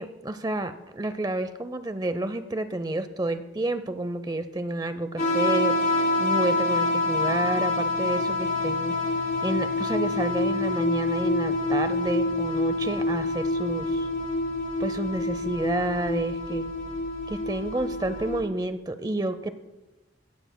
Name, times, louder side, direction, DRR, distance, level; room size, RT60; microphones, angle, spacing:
voice 1, 0.0-5.8 6.2-8.9 9.4-14.1 14.8-16.7 17.3-19.5, right 1 dB, 20° right, 11 dB, 0.6 m, -30 dB
sound 1, 5.2-18.4, left 2 dB, 50° left, 3.8 m, -27 dB
16.5 x 12.0 x 2.2 m, 1.1 s
head